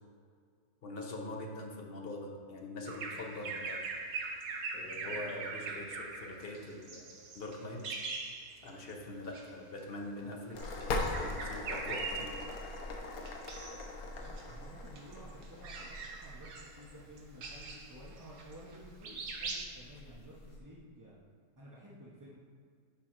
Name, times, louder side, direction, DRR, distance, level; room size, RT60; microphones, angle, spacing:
voice 1, 0.8-3.9 4.7-7.8 8.6-12.3, left 2 dB, 45° left, 0 dB, 0.9 m, -43 dB
Bird vocalization bird call bird song, 2.9-8.9 9.2-9.5 10.5-12.8 13.3-13.9 14.2-18.8 19.0-19.7, right 4 dB, 60° right, 1.1 m, -41 dB
sound 1, 10.5-20.6, left 2 dB, 75° left, 1.2 m, -42 dB
voice 2, 14.0-21.2 21.6-22.4, equal, 20° right, -6 dB, 0.5 m, -53 dB
6.9 x 5.0 x 4.5 m, 2.1 s
omnidirectional pair, 1.6 m